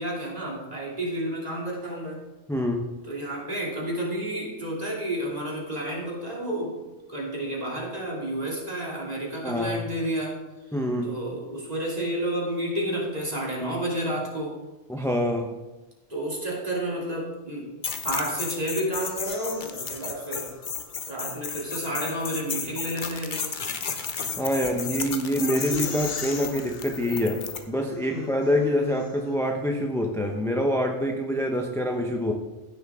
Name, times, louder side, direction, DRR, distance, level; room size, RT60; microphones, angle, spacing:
voice 1, 0.0-2.2 3.0-10.4 11.0-14.6 16.1-17.7 18.0-20.6 21.1-23.5 25.7-25.8 28.1-28.4, right 1 dB, 30° right, -4 dB, 2.8 m, -31 dB
voice 2, 2.5-2.9 9.4-9.8 10.7-11.2 14.9-15.5 24.4-27.4 27.7-32.3, equal, 5° left, 2 dB, 0.6 m, -26 dB
sound 1, 17.8-27.6, left 6 dB, 45° left, 0.9 m, -33 dB
sound 2, 19.0-20.9 22.4-29.6, left 5 dB, 80° left, 1.4 m, -44 dB
15.5 x 6.9 x 3.6 m, 1.1 s
omnidirectional pair, 1.4 m